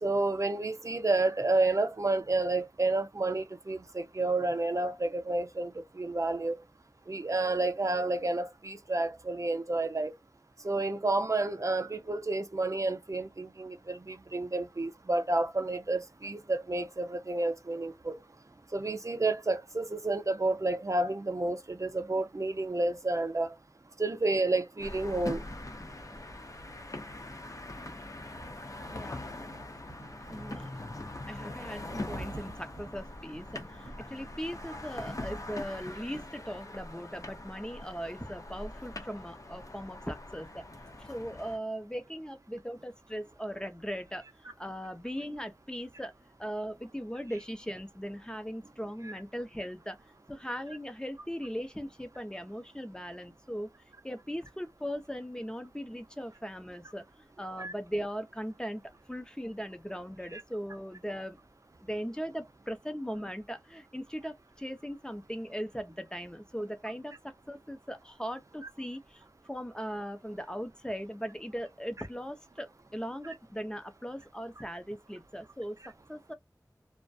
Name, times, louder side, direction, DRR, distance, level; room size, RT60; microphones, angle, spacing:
voice 1, 0.0-6.6 7.1-10.1 10.6-18.2 18.7-23.5 24.0-25.4 49.1-49.2 57.6-57.7 60.3-60.4, right 2 dB, 50° right, 0.5 m, -30 dB
sound 1, 24.8-41.6, left 1 dB, 50° left, 0.6 m, -42 dB
voice 2, 28.9-29.2 30.3-30.7 31.3-40.7 41.0-46.1 46.4-50.0 50.3-53.7 54.0-58.8 59.1-61.4 61.8-69.2 69.5-75.8 76.1-76.3, equal, 10° left, 0.6 m, -39 dB
2.2 x 2.1 x 2.6 m
wide cardioid pair, 45°, 7 cm